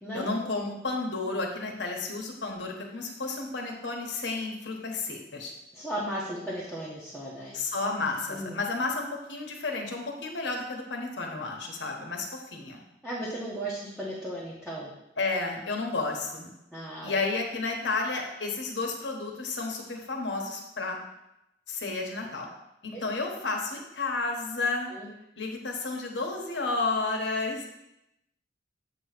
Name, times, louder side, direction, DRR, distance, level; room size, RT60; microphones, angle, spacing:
voice 1, 0.1-5.5 7.5-12.8 15.2-16.5 17.0-21.0 21.7-22.5 22.8-24.9 25.4-27.7, left 3 dB, 75° left, 1 dB, 1.2 m, -32 dB
voice 2, 5.7-7.6 8.3-8.6 13.0-14.9 16.7-17.2 22.9-23.0 24.9-25.1, right 1 dB, ahead, -8 dB, 1.1 m, -35 dB
8.0 x 3.0 x 5.9 m, 0.87 s
head